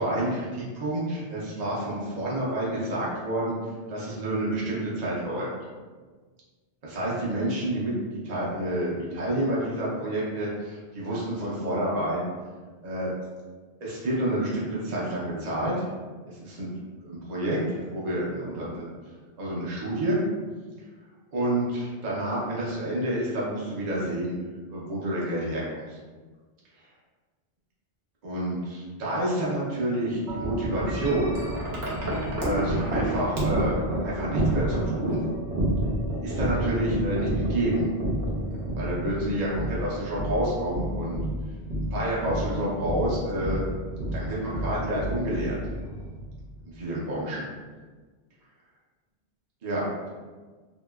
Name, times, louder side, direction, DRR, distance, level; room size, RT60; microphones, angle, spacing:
voice 1, 0.0-3.5 3.9-5.5 6.8-12.3 12.8-13.1 13.8-15.9 16.3-16.7 17.0-18.9 19.4-20.2 21.3-24.4 24.7-26.0 28.2-31.3 32.4-35.2 36.1-37.9 38.8-41.2 41.9-43.6 44.1-45.6 46.7-47.4 49.6-50.1, right 1 dB, 45° right, -6 dB, 0.7 m, -29 dB
Wind chime, 30.3-46.5, right 1 dB, 70° right, 1.0 m, -30 dB
2.8 x 2.8 x 2.3 m, 1.4 s
omnidirectional pair, 1.2 m